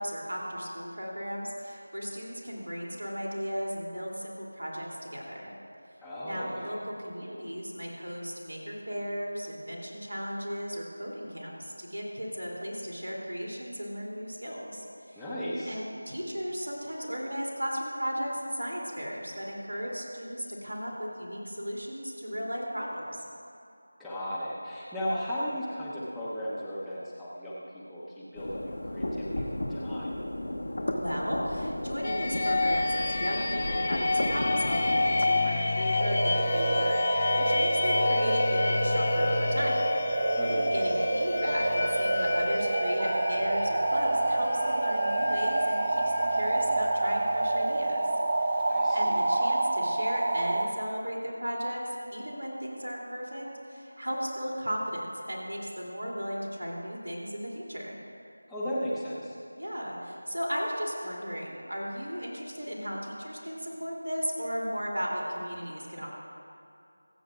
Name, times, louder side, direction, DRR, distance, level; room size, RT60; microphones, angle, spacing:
voice 1, 0.0-5.5 6.2-15.2 15.6-23.2 31.0-39.9 40.7-48.1 48.4-58.0 59.5-66.1, equal, 75° right, -2 dB, 3.0 m, -36 dB
voice 2, 6.0-6.7 15.2-15.8 24.0-27.6 27.9-30.1 40.4-40.7 48.7-49.3 58.5-59.4, equal, ahead, -14 dB, 0.9 m, -36 dB
sound 1, 28.4-35.2, left 1 dB, 55° left, 0.9 m, -33 dB
sound 2, 32.0-47.7, left 3 dB, 30° left, 0.4 m, -30 dB
sound 3, 36.0-50.7, right 2 dB, 35° right, 0.5 m, -27 dB
25.0 x 8.3 x 2.5 m, 2.6 s
figure-of-eight pair, 170°, 0 cm